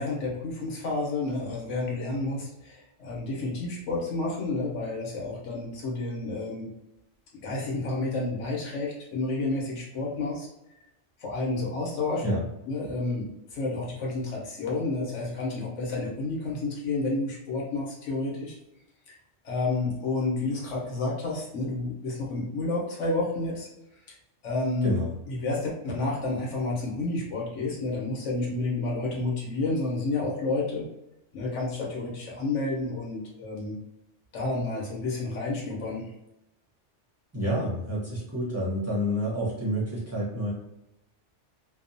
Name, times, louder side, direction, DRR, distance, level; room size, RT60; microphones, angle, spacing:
voice 1, 0.0-6.7 7.4-10.5 11.2-12.2 12.7-18.6 19.1-19.2 19.4-23.7 24.4-24.9 25.3-30.9 31.3-33.8 34.3-36.1, left 2 dB, 85° left, -3 dB, 1.1 m, -30 dB
voice 2, 24.8-25.1 37.3-40.5, equal, 15° right, -7 dB, 0.7 m, -28 dB
2.8 x 2.0 x 2.6 m, 0.88 s
omnidirectional pair, 1.2 m